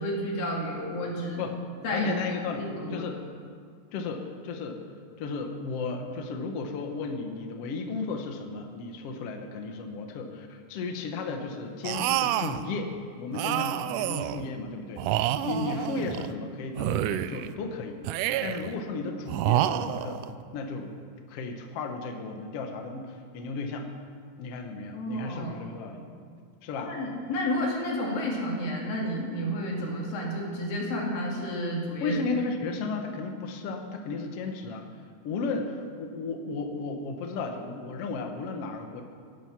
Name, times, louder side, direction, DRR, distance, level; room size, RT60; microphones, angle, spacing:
voice 1, 0.0-1.4 1.8-2.1 2.6-3.1 13.4-13.6 15.4-15.7 24.9-25.6 26.8-32.2, equal, 80° left, -2 dB, 4.2 m, -31 dB
voice 2, 1.9-2.6 2.9-3.2 3.9-4.8 5.2-18.0 18.4-20.2 20.5-21.0 21.3-23.9 24.4-26.0 26.6-26.9 32.0-34.9 35.2-39.0, left 4 dB, 60° left, 4 dB, 1.7 m, -34 dB
sound 1, 11.8-12.6 13.3-14.5 15.0-16.3 16.8-17.5 18.0-18.7 19.3-20.3, right 13 dB, 80° right, 1.9 m, -28 dB
17.0 x 11.0 x 5.9 m, 2.1 s
omnidirectional pair, 4.0 m